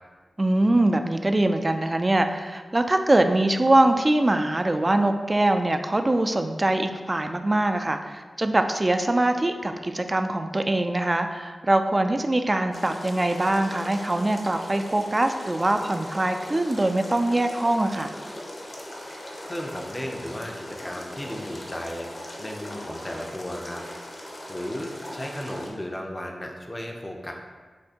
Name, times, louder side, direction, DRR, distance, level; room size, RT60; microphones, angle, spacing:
voice 1, 0.4-18.1, right 1 dB, 30° right, 7 dB, 0.3 m, -23 dB
sound 1, 12.7-25.7, left 1 dB, 45° left, 0.9 m, -39 dB
voice 2, 19.5-23.8 24.1-27.3, left 1 dB, 20° left, 1 dB, 0.6 m, -35 dB
6.4 x 2.7 x 2.8 m, 1.5 s
wide cardioid pair, 70°, 0 cm